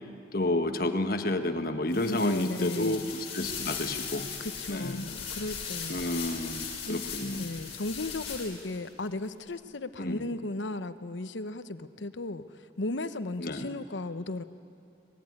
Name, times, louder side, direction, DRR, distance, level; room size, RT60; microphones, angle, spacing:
voice 1, 0.3-4.3 4.7-5.1 5.9-7.5 10.0-10.3 13.4-13.7, left 1 dB, 50° left, 7 dB, 1.4 m, -30 dB
sound 1, 1.9-8.8, left 6 dB, 35° left, 4.0 m, -38 dB
voice 2, 2.1-3.1 4.4-6.0 6.9-7.0 7.3-12.4 12.8-14.4, left 2 dB, 80° left, 11 dB, 0.9 m, -35 dB
25.0 x 20.0 x 9.6 m, 2.7 s
head